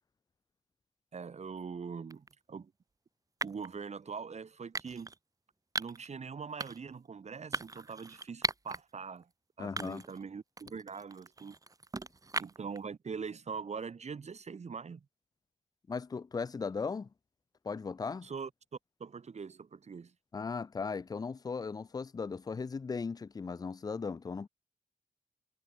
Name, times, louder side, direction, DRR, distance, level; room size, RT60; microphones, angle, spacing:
voice 1, 1.1-2.7 3.4-5.1 5.8-9.3 9.6-11.5 12.4-15.0 18.2-18.5 19.0-20.1, right 5 dB, 50° right, 1.4 m, -42 dB
sound 1, 2.1-2.3 3.4-3.7 4.7-5.2 5.8-6.1 6.6-6.9 7.5-8.8 9.2-9.3 9.8-10.2 10.6-12.8, right 3 dB, 25° right, 0.7 m, -38 dB
voice 2, 9.6-10.0 15.9-17.1 17.6-18.3 20.3-24.5, left 5 dB, 25° left, 0.4 m, -37 dB
wide cardioid pair, 95°, 14 cm